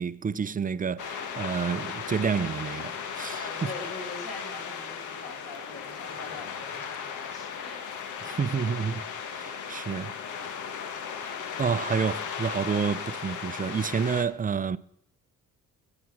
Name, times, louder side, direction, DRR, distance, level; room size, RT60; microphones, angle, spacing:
voice 1, 0.0-3.7 8.2-9.0 9.3-10.1 11.2-14.8, right 6 dB, 30° right, 0.5 m, -29 dB
sound 1, 1.0-14.2, left 7 dB, 80° left, 1.6 m, -36 dB
voice 2, 3.3-7.8, left 2 dB, 55° left, 6.3 m, -43 dB
16.0 x 8.8 x 6.2 m
cardioid pair, 90°, 30 cm